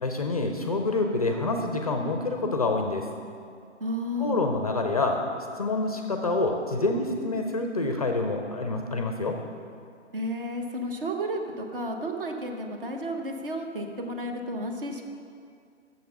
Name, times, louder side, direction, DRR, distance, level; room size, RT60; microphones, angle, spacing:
voice 1, 0.0-3.1 4.2-5.2 5.6-9.3, left 2 dB, 30° left, 4 dB, 0.5 m, -27 dB
voice 2, 3.8-4.4 10.1-15.0, equal, 45° right, 3 dB, 1.0 m, -32 dB
6.7 x 6.6 x 6.5 m, 2.4 s
figure-of-eight pair, 135°, 37 cm